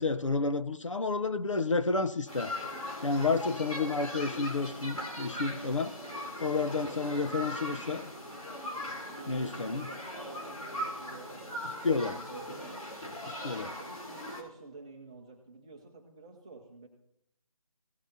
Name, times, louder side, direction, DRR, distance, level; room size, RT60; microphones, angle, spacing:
voice 1, 0.0-2.5 3.0-5.9 6.4-8.1 9.3-9.9 11.8-12.2 13.3-13.7, left 3 dB, 60° left, 11 dB, 0.9 m, -30 dB
sound 1, 2.3-14.4, equal, 80° left, 3.4 m, -40 dB
voice 2, 6.9-7.9 9.1-11.7 12.0-12.9 13.5-16.9, right 3 dB, 10° right, 0 dB, 0.8 m, -50 dB
17.0 x 8.1 x 2.8 m, 0.76 s
figure-of-eight pair, 165°, 18 cm